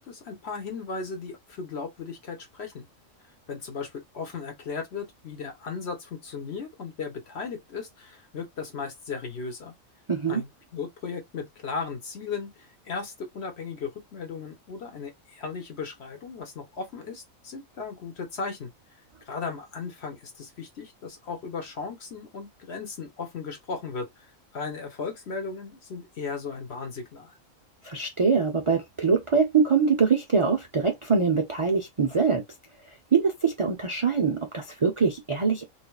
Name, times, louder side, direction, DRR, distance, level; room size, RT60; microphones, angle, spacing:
voice 1, 0.1-2.8 3.5-9.7 10.3-18.7 19.3-24.3 24.5-27.4, left 5 dB, 55° left, 1.2 m, -36 dB
voice 2, 10.1-10.4 27.8-32.4 33.1-35.6, right 5 dB, 45° right, 0.4 m, -23 dB
3.7 x 3.2 x 2.3 m
omnidirectional pair, 1.4 m